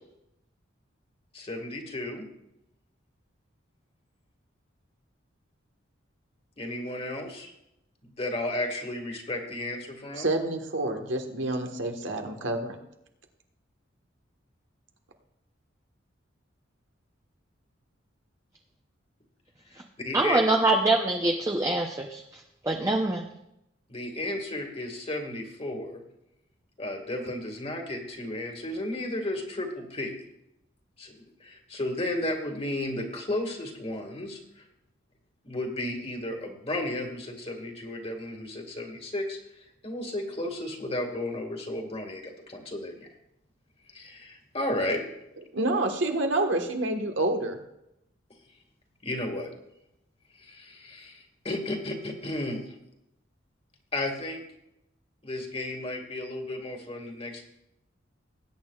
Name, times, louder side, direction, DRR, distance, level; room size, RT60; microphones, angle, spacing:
voice 1, 1.3-2.3 6.6-7.5 8.0-10.3 19.7-20.4 23.9-26.0 26.8-30.1 31.0-34.6 35.4-39.4 39.8-43.1 43.9-45.0 49.0-49.5 50.4-52.7 53.9-54.4 55.2-57.4, left 1 dB, 30° left, 2 dB, 1.9 m, -33 dB
voice 2, 10.1-12.8 45.5-47.6, right 2 dB, 70° right, 4 dB, 1.4 m, -28 dB
voice 3, 20.1-22.2 22.6-23.2, right 2 dB, 15° right, 2 dB, 0.7 m, -24 dB
20.0 x 9.2 x 2.4 m, 0.83 s
head